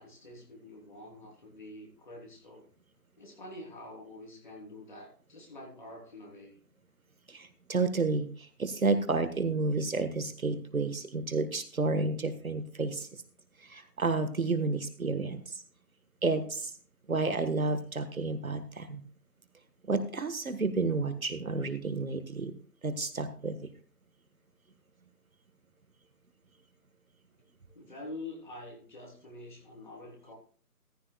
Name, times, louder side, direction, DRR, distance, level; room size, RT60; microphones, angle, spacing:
voice 1, 0.0-2.7 3.2-6.6 27.7-30.3, left 2 dB, 30° left, -1 dB, 3.4 m, -46 dB
voice 2, 7.3-13.1 13.6-15.6 16.2-16.7 17.1-19.0 19.9-22.5 22.8-23.7, right 3 dB, 60° right, 10 dB, 1.6 m, -31 dB
14.5 x 12.5 x 2.3 m, 0.43 s
figure-of-eight pair, 175°, 47 cm